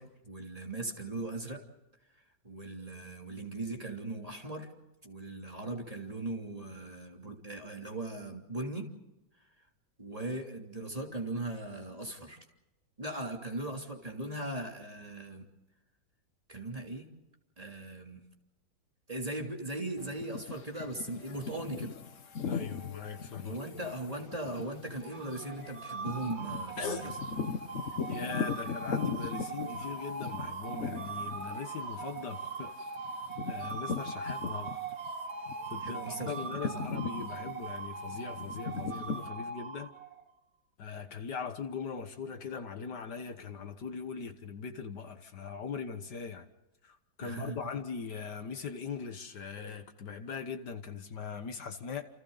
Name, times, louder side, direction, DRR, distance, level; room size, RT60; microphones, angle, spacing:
voice 1, 0.0-1.6 2.1-4.7 5.0-8.9 10.0-12.4 13.0-15.5 16.5-17.1 17.6-18.2 19.1-22.0 23.4-27.2 35.8-37.0 47.2-47.6, right 2 dB, 20° right, 3.2 m, -39 dB
sound 1, 20.0-35.1 35.5-39.3, left 6 dB, 50° left, 1.3 m, -40 dB
voice 2, 22.4-23.6 26.8-27.2 28.1-32.7 33.5-34.8 35.7-39.9 40.8-46.5 46.8-52.0, left 6 dB, 65° left, 1.8 m, -40 dB
sound 2, 25.0-40.3, right 4 dB, 40° right, 1.5 m, -40 dB
30.0 x 28.5 x 4.0 m
omnidirectional pair, 2.0 m